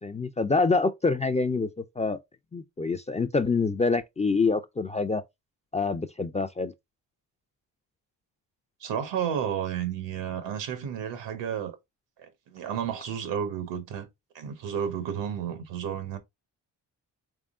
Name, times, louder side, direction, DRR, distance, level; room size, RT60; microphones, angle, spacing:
voice 1, 0.0-2.2 2.5-5.2 5.7-6.7, left 4 dB, 20° left, 0.3 m, -26 dB
voice 2, 8.8-11.8 12.2-14.1 14.3-16.2, right 8 dB, 85° right, 1.1 m, -32 dB
3.7 x 3.5 x 2.4 m
cardioid pair, 75°, 43 cm